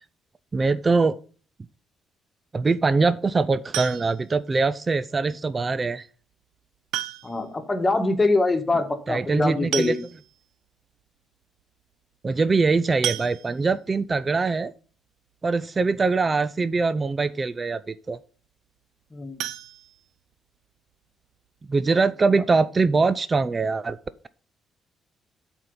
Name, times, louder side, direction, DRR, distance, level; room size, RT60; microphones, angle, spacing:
voice 1, 0.5-1.2 2.5-6.1 9.1-9.9 12.2-14.7 15.4-18.2 21.7-24.0, right 4 dB, 30° right, 15 dB, 0.4 m, -23 dB
sound 1, 3.7-4.4 5.8-5.9 6.9-7.5 7.8-7.9 8.2-8.3 9.3-9.4 9.7-10.4 11.0-11.1 11.4-11.6 13.0-13.9 19.3-20.6 20.9-21.0 21.5-21.6 21.9-22.0, right 12 dB, 85° right, 0.5 m, -33 dB
voice 2, 7.2-10.0 19.1-19.4 22.3-22.4, left 2 dB, 20° left, 6 dB, 1.5 m, -24 dB
11.0 x 4.5 x 5.4 m, 0.41 s
cardioid pair, 90°, 0 cm